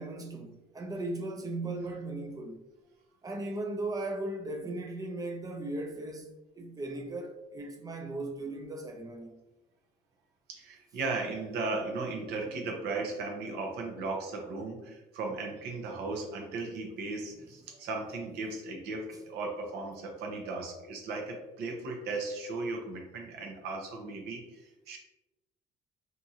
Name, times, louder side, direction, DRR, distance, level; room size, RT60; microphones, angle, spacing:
voice 1, 0.0-2.6 3.2-9.3, right 2 dB, 20° right, 0.4 m, -37 dB
voice 2, 10.5-25.0, right 3 dB, 80° right, 0.7 m, -36 dB
2.7 x 2.4 x 2.8 m
cardioid pair, 110°, 17 cm